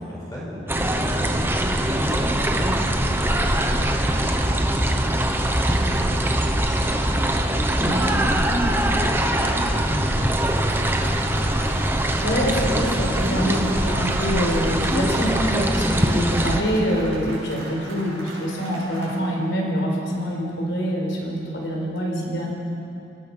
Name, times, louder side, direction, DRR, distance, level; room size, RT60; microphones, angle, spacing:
voice 1, 0.0-4.0 4.3-5.2 5.5-7.4 8.2-8.6 9.0-12.0 13.3-13.9 16.7-16.8, equal, 20° left, -5 dB, 5.5 m, -35 dB
sound 1, 0.7-16.6, right 1 dB, 10° right, 1.1 m, -22 dB
Cheering / Applause, 10.4-19.2, right 1 dB, 85° right, 5.8 m, -39 dB
voice 2, 12.2-22.5, equal, 65° left, 0 dB, 4.6 m, -25 dB
28.5 x 18.0 x 6.2 m, 2.8 s
head